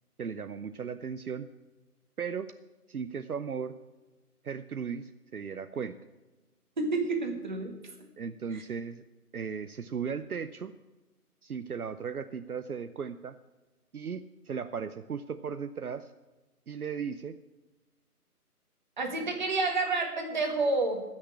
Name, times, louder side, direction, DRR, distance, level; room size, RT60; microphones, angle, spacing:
voice 1, 0.2-1.5 2.2-2.5 2.9-3.8 4.4-6.0 8.2-9.0 9.3-10.7 11.4-13.4 13.9-16.1 16.7-17.4, right 6 dB, 70° right, 10 dB, 0.7 m, -36 dB
voice 2, 6.8-7.7 8.5-8.6 19.0-21.0, right 3 dB, 30° right, 3 dB, 1.7 m, -29 dB
14.0 x 6.6 x 8.6 m, 1.1 s
figure-of-eight pair, 160°, 46 cm